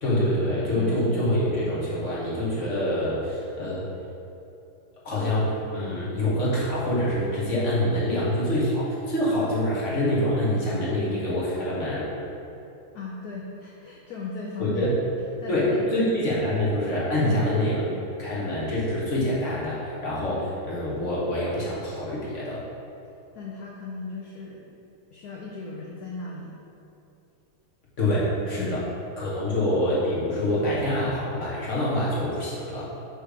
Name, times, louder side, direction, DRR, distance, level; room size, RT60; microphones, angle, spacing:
voice 1, 0.0-3.9 5.0-12.1 14.6-14.9 15.5-17.9 18.2-22.6 28.0-28.8 29.2-32.9, left 1 dB, 40° left, -7 dB, 1.4 m, -25 dB
voice 2, 0.8-1.1 12.9-14.9 15.4-15.9 17.2-17.4 23.3-24.7 25.1-26.5 28.1-28.9, left 3 dB, 70° left, -3 dB, 0.9 m, -37 dB
6.5 x 3.3 x 5.0 m, 2.8 s
omnidirectional pair, 2.3 m